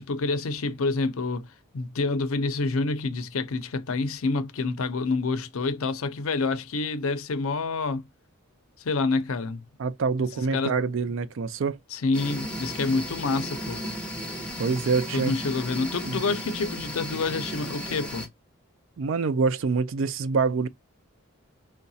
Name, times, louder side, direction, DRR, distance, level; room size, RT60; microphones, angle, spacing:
voice 1, 0.0-1.5 1.7-8.0 8.8-9.6 10.5-10.7 11.9-13.8 15.1-18.3, left 3 dB, 70° left, 0.5 m, -27 dB
voice 2, 9.8-11.8 14.6-15.3 16.1-16.2 19.0-20.7, right 4 dB, 60° right, 0.4 m, -26 dB
sound 1, 12.1-18.3, equal, 5° left, 0.8 m, -35 dB
4.6 x 2.2 x 2.6 m
head